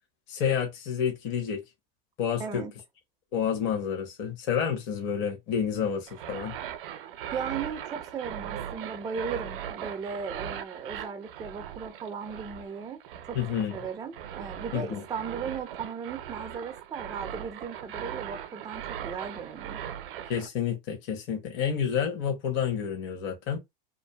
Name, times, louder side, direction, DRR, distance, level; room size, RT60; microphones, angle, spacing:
voice 1, 0.3-1.6 2.2-2.6 3.3-6.5 13.3-13.7 14.7-15.0 20.3-23.6, left 8 dB, 40° left, 0.9 m, -29 dB
voice 2, 2.4-2.7 7.3-13.4 13.7-19.8, right 6 dB, 15° right, 0.4 m, -37 dB
sound 1, 6.1-20.5, right 10 dB, 70° right, 0.6 m, -39 dB
2.5 x 2.5 x 2.2 m
hypercardioid pair, 110°, 29 cm